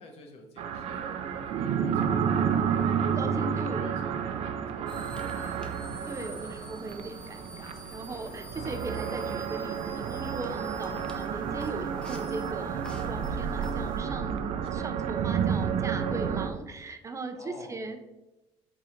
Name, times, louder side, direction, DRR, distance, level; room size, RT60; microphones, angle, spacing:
voice 1, 0.0-5.9 9.2-9.5 10.7-11.1 14.7-14.9 17.3-17.8, left 3 dB, 65° left, 2 dB, 1.3 m, -50 dB
sound 1, 0.6-16.5, right 7 dB, 65° right, 0.6 m, -31 dB
voice 2, 3.1-3.9 6.1-18.0, right 3 dB, 25° right, 7 dB, 0.7 m, -38 dB
sound 2, 4.9-14.0, left 1 dB, 10° left, 1.2 m, -47 dB
5.6 x 4.0 x 5.0 m, 0.96 s
cardioid pair, 110°, 11 cm